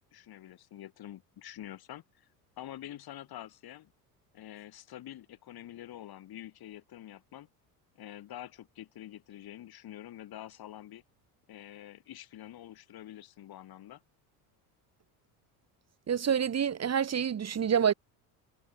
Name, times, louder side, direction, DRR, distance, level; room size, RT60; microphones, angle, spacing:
voice 1, 0.1-2.3 2.6-3.9 4.3-7.5 7.9-11.0 11.5-14.0, left 12 dB, 55° left, 4.8 m, -47 dB
voice 2, 16.1-17.9, right 8 dB, 35° right, 2.1 m, -27 dB
supercardioid pair, 80°, 45 cm